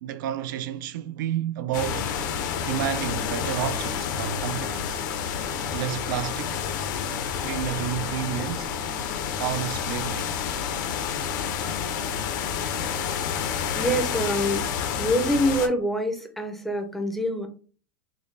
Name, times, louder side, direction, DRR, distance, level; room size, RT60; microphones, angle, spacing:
voice 1, 0.0-2.2 2.7-5.0 5.7-6.7 7.4-8.7 9.4-10.4, right 11 dB, 70° right, 0.5 m, -30 dB
sound 1, 1.7-15.7, left 7 dB, 60° left, 0.7 m, -29 dB
voice 2, 13.8-14.6 15.0-17.5, equal, ahead, 0.5 m, -25 dB
5.1 x 2.1 x 3.2 m
supercardioid pair, 160°, 11 cm